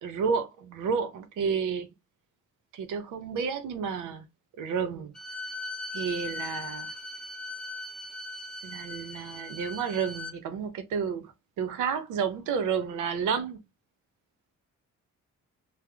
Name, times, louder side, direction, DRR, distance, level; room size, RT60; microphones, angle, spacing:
voice 1, 0.0-1.9 2.7-4.3 4.6-5.1 5.9-6.9 8.6-13.6, right 6 dB, 85° right, 0.7 m, -31 dB
Bowed string instrument, 5.1-10.4, left 2 dB, 5° left, 0.6 m, -39 dB
3.4 x 2.1 x 3.3 m
cardioid pair, 90°, 30 cm